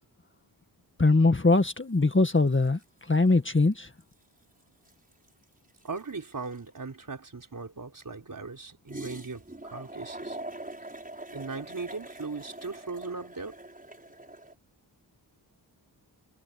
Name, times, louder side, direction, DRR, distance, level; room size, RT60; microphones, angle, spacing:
voice 1, 1.0-2.8 3.1-3.9, left 3 dB, 25° left, 1.9 m, -22 dB
sound 1, 1.5-1.8 2.0-3.3 3.7-3.8 4.0-6.9 8.9-14.5, right 1 dB, 20° right, 6.0 m, -43 dB
voice 2, 5.8-9.4 9.7-10.4 11.3-13.6, right 4 dB, 45° right, 4.5 m, -38 dB
cardioid pair, 50°, 45 cm